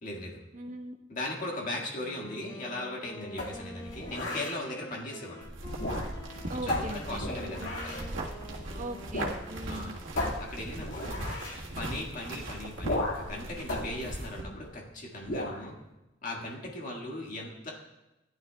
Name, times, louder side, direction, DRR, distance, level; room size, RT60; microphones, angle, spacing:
voice 1, 0.0-0.4 1.1-5.5 6.5-7.8 9.7-10.0 10.4-11.2 11.8-15.8 16.2-17.7, left 1 dB, 45° left, -1 dB, 1.8 m, -38 dB
voice 2, 0.5-1.0 4.9-5.0 6.5-7.7 8.8-10.0, right 1 dB, 40° right, 4 dB, 0.9 m, -40 dB
Wind instrument woodwind instrument, 1.9-10.2, left 1 dB, 20° left, 0.7 m, -48 dB
sound 1, 3.4-4.6 5.7-6.3 6.7-8.1 9.1-9.4 9.7-9.8 10.2-11.6 12.8-13.3 13.7-14.8 15.2-15.6, left 1 dB, 80° left, 2.0 m, -34 dB
sound 2, 5.4-14.4, right 1 dB, 80° right, 1.6 m, -40 dB
15.5 x 11.0 x 2.3 m, 0.98 s
head